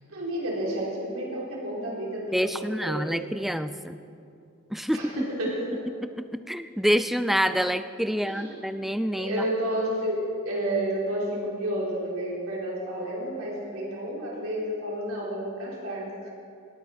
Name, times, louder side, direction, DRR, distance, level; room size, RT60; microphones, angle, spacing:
voice 1, 0.1-3.1 4.9-5.6 8.1-8.6 9.1-16.3, right 1 dB, 75° right, -5 dB, 3.7 m, -31 dB
voice 2, 2.3-4.0 4.7-5.0 6.0-9.4, equal, ahead, 11 dB, 0.4 m, -27 dB
19.0 x 8.1 x 6.0 m, 2.5 s
head